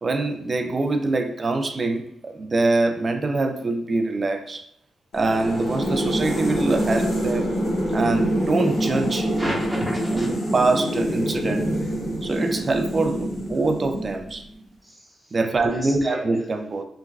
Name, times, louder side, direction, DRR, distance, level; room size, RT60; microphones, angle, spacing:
voice 1, 0.0-4.6 5.1-7.5 7.9-9.3 10.1-11.7 12.2-14.4 15.3-16.9, right 3 dB, 45° right, 5 dB, 0.3 m, -24 dB
sound 1, 5.1-14.5, equal, 80° left, 0.9 m, -26 dB
voice 2, 9.4-10.3 11.7-12.0 14.8-15.4 15.7-16.5, equal, ahead, -6 dB, 1.0 m, -33 dB
3.1 x 2.2 x 2.4 m, 0.68 s
supercardioid pair, 50°, 0 cm